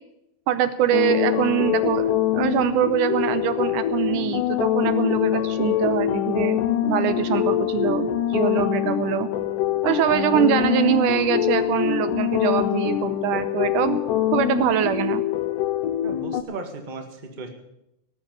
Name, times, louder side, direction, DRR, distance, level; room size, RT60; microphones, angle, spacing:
voice 1, 0.5-6.6 6.9-9.3 9.8-14.0 14.3-15.2, right 11 dB, 80° right, 12 dB, 2.2 m, -23 dB
sound 1, 0.9-16.4, left 11 dB, 80° left, 2.4 m, -24 dB
voice 2, 16.0-17.5, right 3 dB, 20° right, 4 dB, 1.2 m, -36 dB
18.5 x 7.2 x 9.1 m, 0.85 s
omnidirectional pair, 3.7 m